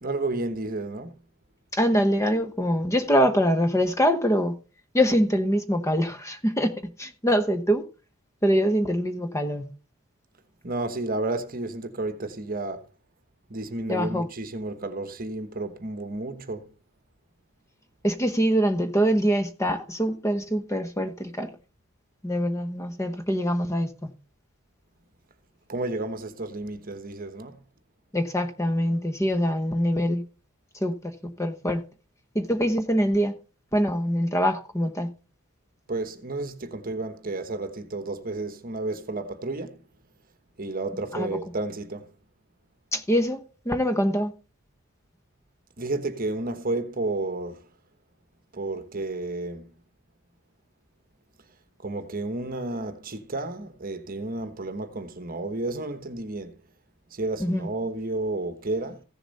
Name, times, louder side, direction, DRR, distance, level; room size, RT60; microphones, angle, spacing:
voice 1, 0.0-1.2 10.6-12.9 13.5-16.7 25.7-27.6 35.9-39.8 40.6-42.1 45.8-47.7 48.5-49.7 51.8-56.6 57.1-59.0, right 2 dB, 40° right, 1.1 m, -31 dB
voice 2, 1.7-4.5 4.9-6.7 7.0-7.8 8.4-9.6 13.9-14.3 18.0-21.5 22.2-24.1 28.1-30.2 30.8-31.1 31.4-31.8 32.3-33.3 33.7-35.1 41.1-41.4 42.9-44.3 57.4-57.7, equal, 15° left, 0.9 m, -24 dB
15.5 x 7.0 x 4.1 m
head